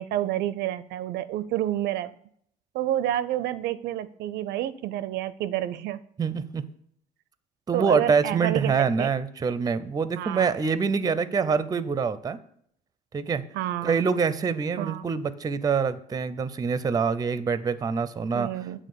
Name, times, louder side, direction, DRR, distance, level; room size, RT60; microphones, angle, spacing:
voice 1, 0.0-2.1 2.7-6.0 7.7-8.7 9.0-9.1 10.2-10.5 13.5-14.0 14.8-15.0 18.3-18.8, right 12 dB, 80° right, 15 dB, 0.4 m, -29 dB
voice 2, 6.2-6.6 7.7-12.4 13.1-13.4 13.8-18.5, right 5 dB, 20° right, 14 dB, 0.5 m, -25 dB
8.4 x 3.7 x 6.8 m, 0.67 s
cardioid pair, 110°, 17 cm